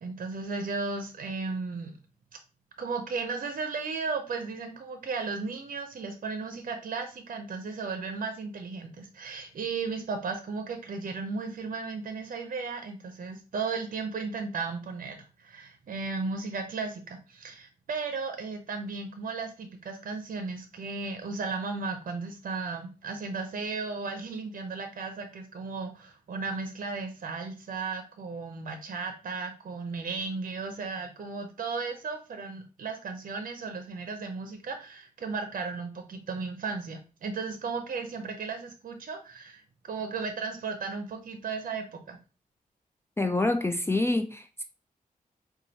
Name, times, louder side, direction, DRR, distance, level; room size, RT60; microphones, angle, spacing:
voice 1, 0.0-2.0 2.8-42.2, right 4 dB, 65° right, 0.6 m, -35 dB
voice 2, 43.2-44.6, left 2 dB, 15° left, 0.3 m, -27 dB
4.3 x 2.3 x 2.7 m
wide cardioid pair, 85°, 15 cm